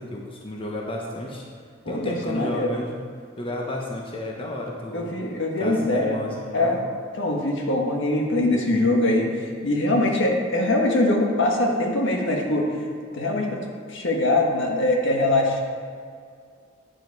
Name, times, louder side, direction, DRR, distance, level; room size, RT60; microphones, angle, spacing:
voice 1, 0.0-1.4 1.9-3.0 3.4-5.1 5.6-6.8, left 1 dB, 25° left, -1 dB, 1.0 m, -32 dB
voice 2, 1.8-2.7 4.9-6.2 6.5-6.8 7.1-12.7 13.1-13.6 13.9-15.6, left 2 dB, 65° left, 0 dB, 1.5 m, -22 dB
9.3 x 7.9 x 4.7 m, 2.2 s
head